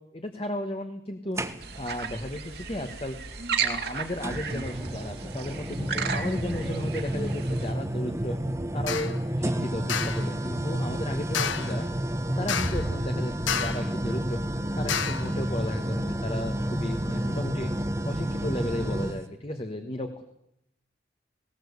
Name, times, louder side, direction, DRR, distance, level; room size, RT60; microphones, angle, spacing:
voice 1, 0.1-1.4 1.8-3.2 3.6-8.4 8.7-11.9 12.4-14.4 14.8-17.7 18.0-20.2, left 1 dB, 30° left, 6 dB, 1.4 m, -34 dB
sound 1, 1.4-2.0 3.3-3.4 4.2-19.2, right 1 dB, 15° right, 1.1 m, -30 dB
sound 2, 1.6-7.7, right 6 dB, 55° right, 2.2 m, -34 dB
sound 3, 8.9-9.2 9.9-10.3 11.3-11.8 12.5-12.9 13.5-13.9 14.9-15.3, left 7 dB, 80° left, 1.2 m, -30 dB
19.5 x 18.5 x 8.2 m, 0.77 s
head